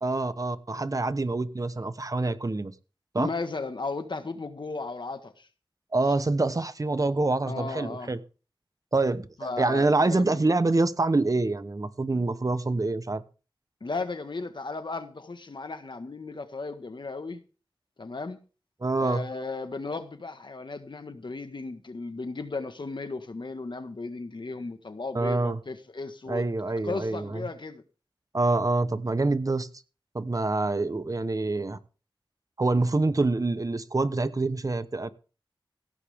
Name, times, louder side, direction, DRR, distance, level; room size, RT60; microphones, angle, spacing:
voice 1, 0.0-2.7 3.1-3.3 5.9-8.2 8.9-9.3 9.6-13.2 18.8-19.2 25.1-25.6 26.3-27.4 28.3-29.7 30.1-31.8 32.6-35.1, right 2 dB, 40° right, 13 dB, 1.0 m, -26 dB
voice 2, 3.2-5.5 7.5-8.1 9.4-10.4 13.8-17.4 18.0-18.4 19.0-26.4 26.8-27.8, left 3 dB, 60° left, 8 dB, 1.6 m, -35 dB
16.5 x 10.0 x 3.6 m, 0.36 s
wide cardioid pair, 70°, 9 cm